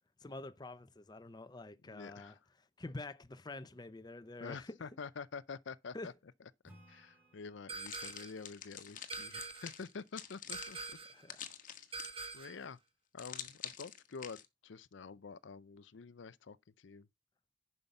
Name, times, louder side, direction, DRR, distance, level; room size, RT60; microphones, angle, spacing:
voice 1, 0.2-2.3 2.8-4.8 5.9-6.1 11.1-11.4, left 2 dB, 20° left, 0.6 m, -47 dB
voice 2, 1.8-2.4 4.4-6.1 6.9-11.0 11.9-12.0 12.3-12.8 13.1-17.1, left 5 dB, 70° left, 0.5 m, -48 dB
Acoustic guitar / Strum, 6.6-10.1, equal, 10° right, 5.1 m, -65 dB
sound 1, 7.7-8.4 9.1-9.8 10.5-11.2 11.9-12.7, right 4 dB, 30° right, 1.3 m, -45 dB
sound 2, 7.8-12.4 13.2-14.4, left 9 dB, 45° left, 1.2 m, -47 dB
10.5 x 5.7 x 5.3 m
head